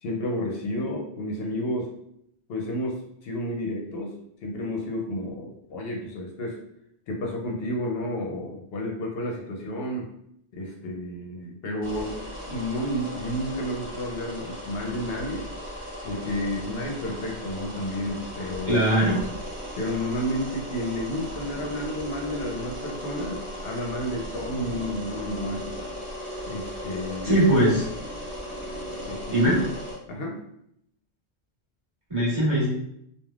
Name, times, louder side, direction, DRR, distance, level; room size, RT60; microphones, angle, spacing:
voice 1, 0.0-1.9 2.5-4.1 4.4-6.6 7.1-10.1 10.5-12.2 12.5-15.5 16.0-18.8 19.8-25.7 26.5-27.4 29.1-29.4 30.1-30.4, left 1 dB, 70° left, 0 dB, 0.8 m, -31 dB
sound 1, 11.8-30.0, equal, 50° right, 1.1 m, -37 dB
voice 2, 18.7-19.2 27.2-27.8 29.3-29.6 32.1-32.7, right 1 dB, 30° right, -9 dB, 1.4 m, -20 dB
3.2 x 2.3 x 2.3 m, 0.74 s
omnidirectional pair, 1.1 m